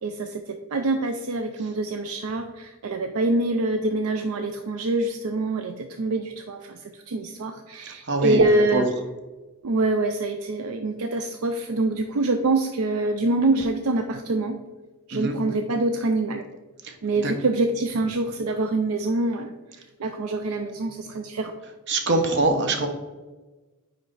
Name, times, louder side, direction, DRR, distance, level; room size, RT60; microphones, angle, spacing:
voice 1, 0.0-8.9 9.6-14.6 15.1-16.5 17.0-21.5, right 2 dB, 70° right, 6 dB, 0.5 m, -25 dB
voice 2, 8.1-8.4 8.7-8.8 15.1-15.4 16.8-16.9 17.2-17.3 21.9-22.9, right 2 dB, 50° right, 5 dB, 1.0 m, -23 dB
9.4 x 3.3 x 3.9 m, 1.2 s
head